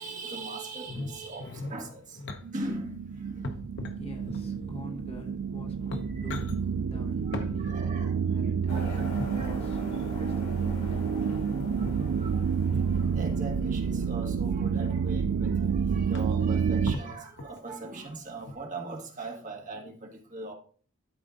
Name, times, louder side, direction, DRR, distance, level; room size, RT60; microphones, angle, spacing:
voice 1, 0.0-2.2 2.5-3.5 6.2-6.3 7.3-8.2 8.7-9.0 9.3-9.6 10.2-10.3 11.8-12.4 12.8-20.5, right 2 dB, 35° right, 1.7 m, -40 dB
sound 1, 0.9-2.4 3.4-4.7 5.4-5.5 5.8-6.6 7.3-7.5 9.0-9.5 11.6-12.1 12.7-13.1 14.1-14.7 15.4-15.5 15.8-15.9 16.1-16.5 16.9-17.7 18.4-18.5, left 2 dB, 50° left, 0.9 m, -38 dB
sound 2, 2.4-16.9, right 6 dB, 65° right, 0.3 m, -29 dB
voice 2, 4.0-11.3, left 1 dB, 25° left, 0.9 m, -45 dB
sound 3, 8.7-14.2, left 2 dB, 80° left, 3.3 m, -45 dB
12.0 x 4.2 x 3.9 m
head